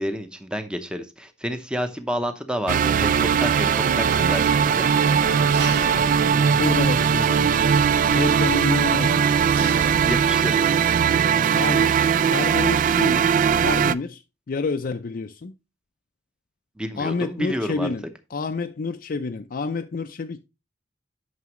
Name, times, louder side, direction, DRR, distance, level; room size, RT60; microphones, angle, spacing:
voice 1, 0.0-4.9 10.0-10.6 16.8-17.9, equal, 5° right, 0.8 m, -29 dB
sound 1, 2.7-13.9, right 7 dB, 45° right, 0.3 m, -20 dB
Engine, 2.9-10.4, right 2 dB, 75° right, 1.3 m, -33 dB
voice 2, 5.2-9.5 11.5-12.0 12.2-13.3 13.6-14.2 14.5-15.5 17.0-18.0 18.3-20.4, left 4 dB, 50° left, 0.4 m, -29 dB
9.4 x 6.0 x 3.0 m
head